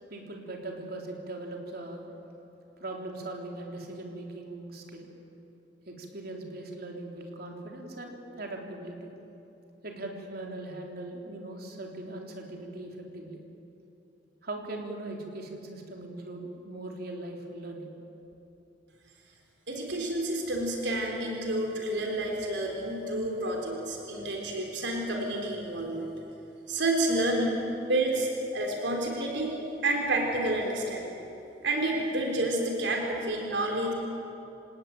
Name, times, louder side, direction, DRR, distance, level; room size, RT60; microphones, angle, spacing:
voice 1, 0.1-2.0 2.8-5.1 5.9-9.1 9.8-13.4 14.4-17.9, right 2 dB, 60° right, 1 dB, 3.7 m, -40 dB
voice 2, 19.7-26.1 26.7-27.6 27.9-29.5 29.8-31.1 31.6-33.9, right 1 dB, 80° right, 1 dB, 3.9 m, -29 dB
27.0 x 18.5 x 9.1 m, 2.9 s
head